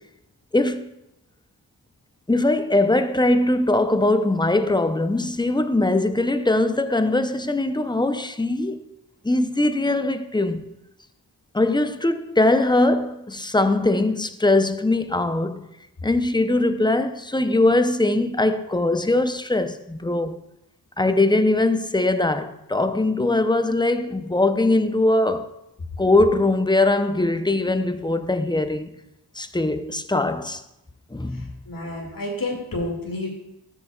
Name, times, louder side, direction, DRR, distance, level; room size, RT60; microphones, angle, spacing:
voice 1, 0.5-0.9 2.3-8.8 9.2-10.7 11.5-15.7 16.0-20.4 21.0-25.5 26.0-29.0 29.3-30.6 31.1-31.5, left 2 dB, 10° left, 0.6 m, -21 dB
voice 2, 31.3-33.3, left 2 dB, 50° left, 2.2 m, -30 dB
13.0 x 7.8 x 2.4 m
cardioid pair, 55°, 42 cm